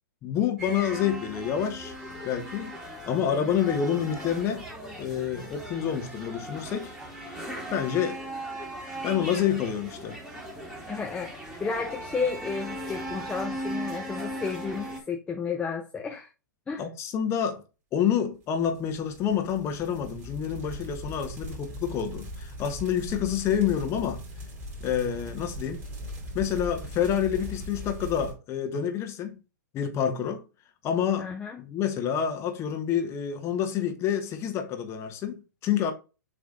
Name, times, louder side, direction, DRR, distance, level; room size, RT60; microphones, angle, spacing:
voice 1, 0.2-1.9 2.2-4.7 5.0-6.9 7.7-8.2 9.0-10.2 16.8-17.6 17.9-24.2 24.8-25.8 26.3-29.4 29.7-30.4 30.8-31.3 31.6-35.9, left 9 dB, 25° left, 1.3 m, -28 dB
sound 1, 0.6-15.0, right 1 dB, 5° right, 2.3 m, -38 dB
voice 2, 10.9-16.3 16.7-16.8 31.2-31.6, left 5 dB, 10° left, 0.7 m, -32 dB
Fire Forest Inferno, 18.5-28.3, equal, 20° right, 3.0 m, -39 dB
7.3 x 3.4 x 3.9 m
hypercardioid pair, 120°, 10 cm